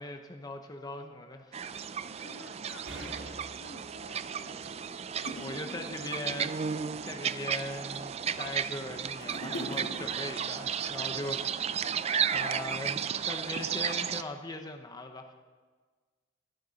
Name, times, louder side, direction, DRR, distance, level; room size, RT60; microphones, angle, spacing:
voice 1, 0.0-1.6 5.3-6.6 7.0-11.4 12.3-15.3, left 1 dB, 20° left, 5 dB, 0.8 m, -40 dB
sound 1, 1.5-14.2, right 7 dB, 35° right, 0.4 m, -34 dB
voice 2, 2.2-3.2 3.4-5.5, left 1 dB, 90° left, 1 dB, 2.4 m, -53 dB
sound 2, 2.9-11.3, right 1 dB, 85° right, 2.8 m, -52 dB
sound 3, 4.0-4.1 4.8-4.9 5.3-6.1 6.6-7.3 8.0-8.6 8.9-10.5 11.3-11.4, equal, 65° left, 2.5 m, -42 dB
15.0 x 12.5 x 4.1 m, 1.4 s
head